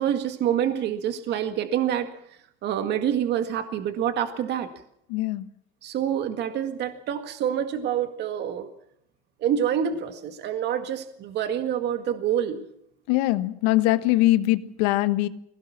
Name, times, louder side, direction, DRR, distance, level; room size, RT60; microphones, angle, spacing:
voice 1, 0.0-2.1 2.6-4.7 5.8-8.7 9.4-12.6, right 9 dB, 55° right, 8 dB, 1.9 m, -27 dB
voice 2, 5.1-5.5 13.1-15.3, left 17 dB, 90° left, 13 dB, 1.3 m, -22 dB
20.5 x 17.5 x 7.3 m, 0.73 s
cardioid pair, 130°, 21 cm